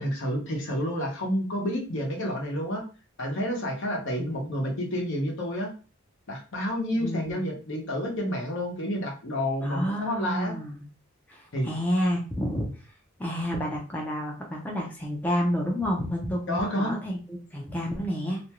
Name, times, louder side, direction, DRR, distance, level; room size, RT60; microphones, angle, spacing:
voice 1, 0.0-2.8 3.2-5.7 6.3-10.5 11.5-11.7 16.5-17.0, equal, 65° left, 0 dB, 0.9 m, -29 dB
voice 2, 3.9-4.5 7.0-7.5 9.6-10.9 11.3-12.7 13.2-18.4, equal, 10° left, -2 dB, 0.5 m, -30 dB
2.5 x 2.2 x 2.9 m, 0.35 s
head